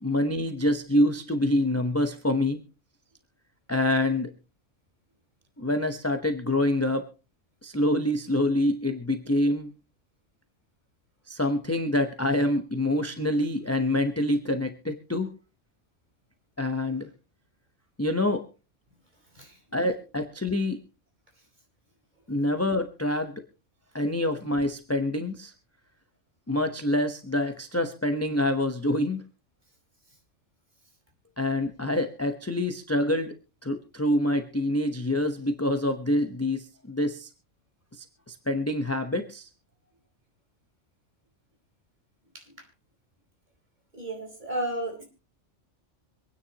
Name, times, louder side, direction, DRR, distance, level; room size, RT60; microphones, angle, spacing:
voice 1, 0.0-2.6 3.7-4.3 5.6-7.1 7.6-9.7 11.3-15.3 16.6-17.1 18.0-18.5 19.7-20.8 22.3-23.4 23.9-25.5 26.5-29.2 31.4-33.3 33.6-37.3 37.9-39.5, left 1 dB, 15° left, 7 dB, 0.9 m, -26 dB
voice 2, 43.9-45.0, right 1 dB, 35° right, 1 dB, 4.6 m, -33 dB
25.5 x 9.8 x 2.9 m, 0.32 s
omnidirectional pair, 1.2 m